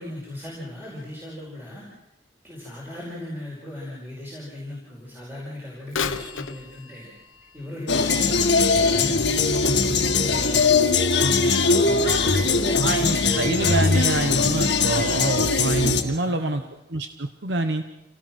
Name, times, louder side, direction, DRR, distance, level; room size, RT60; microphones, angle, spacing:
voice 1, 0.0-1.9 2.4-7.1 7.5-10.9 11.4-13.6 16.1-16.7, left 1 dB, 10° right, -5 dB, 5.1 m, -37 dB
Bird vocalization bird call bird song / Telephone, 5.9-9.7 10.3-10.4 11.2-11.3 11.9-12.0, left 6 dB, 90° left, 1.1 m, -35 dB
sound 1, 7.9-16.0, left 4 dB, 60° left, 1.8 m, -20 dB
voice 2, 12.8-16.6 16.9-17.8, right 2 dB, 60° right, 8 dB, 1.0 m, -26 dB
28.0 x 18.0 x 6.0 m, 0.91 s
head